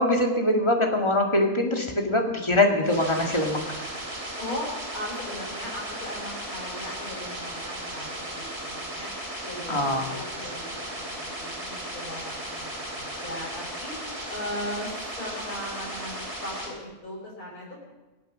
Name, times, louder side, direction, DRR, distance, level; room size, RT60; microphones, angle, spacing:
voice 1, 0.0-3.6 9.7-10.0, left 1 dB, 20° left, 2 dB, 2.0 m, -23 dB
sound 1, 2.8-16.7, right 1 dB, 50° right, 3.9 m, -36 dB
voice 2, 4.4-9.1 9.4-13.9 14.3-17.9, left 1 dB, 90° left, -4 dB, 5.7 m, -38 dB
23.5 x 8.0 x 6.3 m, 1.2 s
omnidirectional pair, 1.5 m